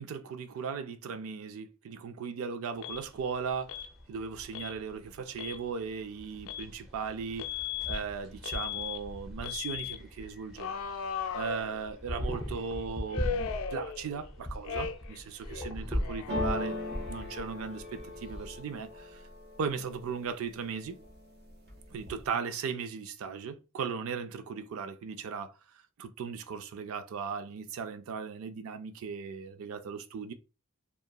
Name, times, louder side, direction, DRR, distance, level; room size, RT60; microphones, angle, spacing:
voice 1, 0.0-3.8 4.1-7.5 7.9-10.7 11.3-16.8 17.0-19.3 19.6-21.0 21.9-30.3, right 6 dB, 80° right, 0.4 m, -37 dB
Alarm, 2.8-3.0 3.7-3.9 4.5-4.7 5.3-5.6 6.5-6.7 7.4-8.0 8.4-9.0 9.4-10.0 10.6-12.1 13.1-14.3 14.6-15.2 15.5-17.2, left 7 dB, 70° left, 0.3 m, -37 dB
sound 1, 2.9-18.6, equal, 5° right, 0.5 m, -41 dB
sound 2, 16.3-20.1 20.6-21.2 21.5-22.3, left 1 dB, 50° right, 0.7 m, -38 dB
2.8 x 2.4 x 2.2 m
head